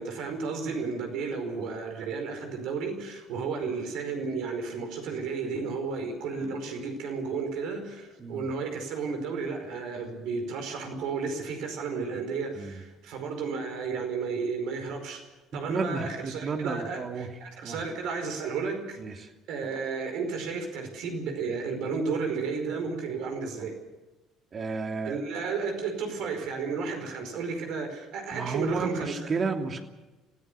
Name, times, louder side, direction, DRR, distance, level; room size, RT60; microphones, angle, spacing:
voice 1, 0.0-15.2 15.5-23.8 25.0-29.2, right 4 dB, 60° right, 5 dB, 5.0 m, -33 dB
voice 2, 15.7-17.3 17.6-17.8 19.0-19.3 24.5-25.2 28.3-29.8, right 4 dB, 40° right, 4 dB, 2.9 m, -32 dB
27.5 x 16.5 x 6.9 m, 1.1 s
figure-of-eight pair, 55°, 0 cm